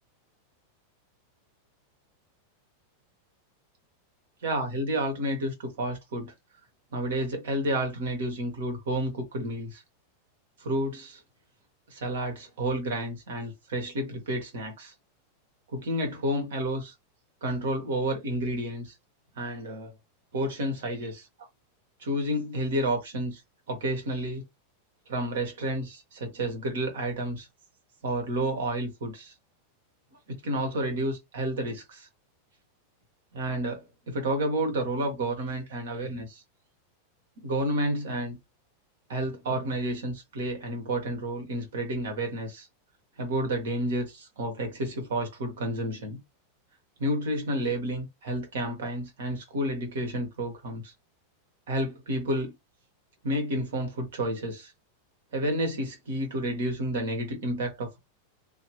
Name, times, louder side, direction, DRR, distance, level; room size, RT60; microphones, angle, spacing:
voice 1, 4.4-6.3 6.9-9.8 10.6-11.2 11.9-14.9 15.7-16.9 17.4-18.9 19.3-19.9 20.3-21.3 22.0-23.4 23.7-24.4 25.1-27.5 28.0-29.3 30.3-32.1 33.3-36.4 37.4-38.4 39.1-42.7 43.2-46.2 47.0-50.9 51.7-52.5 53.2-54.7 55.3-58.0, right 1 dB, 60° right, 1.7 m, -30 dB
3.0 x 2.9 x 3.1 m
figure-of-eight pair, 90°, 0 cm